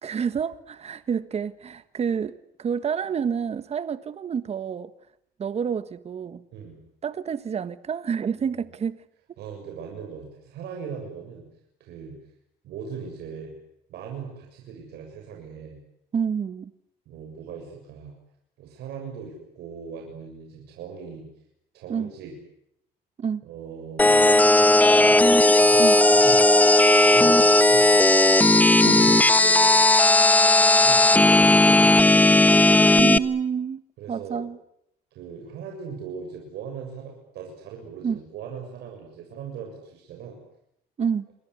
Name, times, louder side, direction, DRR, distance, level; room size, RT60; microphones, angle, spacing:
voice 1, 0.0-4.9 5.4-6.4 7.0-9.0 16.1-16.7 21.9-22.1 23.2-23.4 25.8-26.0 28.8-29.0 33.0-33.8 34.1-34.6 38.0-38.2 41.0-41.3, right 7 dB, 40° right, 1.5 m, -28 dB
voice 2, 9.4-11.5 11.8-12.2 12.6-13.5 13.9-15.8 17.1-18.2 18.6-21.3 21.7-22.3 23.4-24.3 24.6-25.1 25.6-26.5 27.0-27.9 28.8-29.9 30.6-32.4 34.0-34.4 35.1-40.4, right 6 dB, 75° right, 7.1 m, -39 dB
sound 1, 24.0-33.2, left 2 dB, 10° left, 1.3 m, -16 dB
29.0 x 23.0 x 8.2 m
cardioid pair, 110°, 17 cm